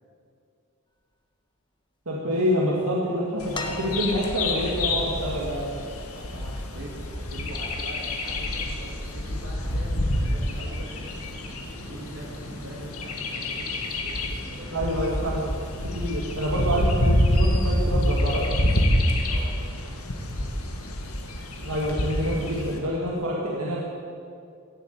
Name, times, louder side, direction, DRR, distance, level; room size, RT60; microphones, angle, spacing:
voice 1, 2.1-5.7 14.7-15.5 15.9-18.5 21.6-23.8, equal, 75° right, -4 dB, 2.0 m, -27 dB
Bird vocalization bird call bird song, 3.4-22.8, left 1 dB, 85° left, 1.9 m, -27 dB
pan slam, 3.5-4.6 6.1-6.2, left 3 dB, 20° left, 1.2 m, -36 dB
voice 2, 6.1-10.9 11.7-14.9 19.2-19.9, equal, 55° right, -1 dB, 3.1 m, -43 dB
Thunder, 8.2-20.3, equal, 40° left, 2.5 m, -45 dB
16.0 x 8.1 x 8.9 m, 2.4 s
head